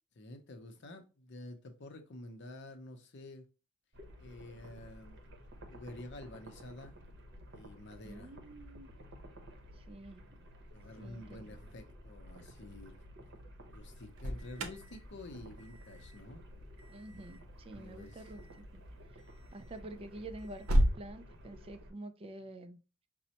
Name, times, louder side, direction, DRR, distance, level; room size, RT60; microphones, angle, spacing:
voice 1, 0.2-3.4 4.2-5.2 5.7-7.0 7.5-8.3 10.7-13.0 13.3-13.4 13.7-16.4 17.7-18.3, left 1 dB, 55° left, 0.6 m, -49 dB
sound 1, 3.9-21.9, equal, 50° right, 0.7 m, -53 dB
voice 2, 8.0-8.9 9.7-10.5 11.0-11.6 16.9-18.8 19.1-19.2 19.5-22.8, right 2 dB, 25° right, 0.3 m, -48 dB
Alarm, 14.0-21.0, equal, 80° right, 0.7 m, -36 dB
5.2 x 2.0 x 2.8 m
head